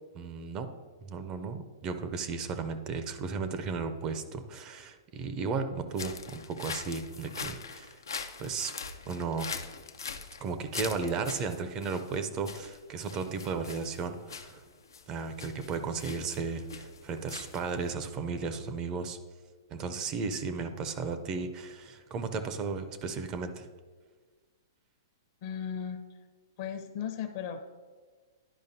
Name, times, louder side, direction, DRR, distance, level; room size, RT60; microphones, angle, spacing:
voice 1, 0.1-0.7 1.0-8.0 8.4-8.7 9.1-9.5 10.4-14.6 15.1-19.2 19.7-23.7, right 5 dB, 30° right, 9 dB, 0.5 m, -35 dB
sound 1, 5.9-17.9, left 5 dB, 80° left, 0.5 m, -42 dB
voice 2, 25.4-26.0 26.6-27.6, left 8 dB, 50° left, 7 dB, 0.7 m, -36 dB
11.0 x 5.0 x 2.7 m, 1.5 s
hypercardioid pair, 120°, 2 cm